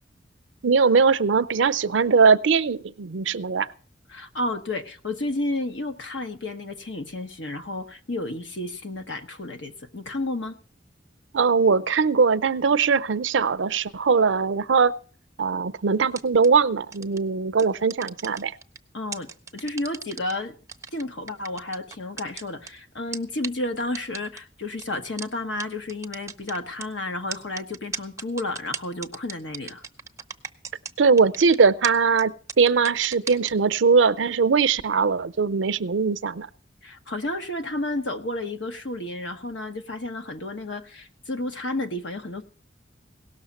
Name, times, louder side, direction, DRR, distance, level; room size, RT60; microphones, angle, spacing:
voice 1, 0.6-3.7 11.3-14.9 15.4-18.5 31.0-36.5, right 5 dB, 85° right, 15 dB, 0.6 m, -20 dB
voice 2, 4.1-10.5 18.9-20.5 20.9-29.8 36.8-42.4, left 2 dB, 80° left, 8 dB, 1.2 m, -31 dB
sound 1, 16.1-16.5 16.9-17.2 17.6-18.8 19.1-20.3 20.7-22.7 23.1-23.2 23.4-23.5 23.9-24.4 24.8-24.9 25.2-25.3 25.6-25.7 25.9-26.8 27.3-30.9 31.2-31.6 31.8-31.9 32.2-32.3 32.5-33.5, right 6 dB, 15° right, 0.7 m, -35 dB
17.5 x 6.5 x 7.1 m, 0.42 s
head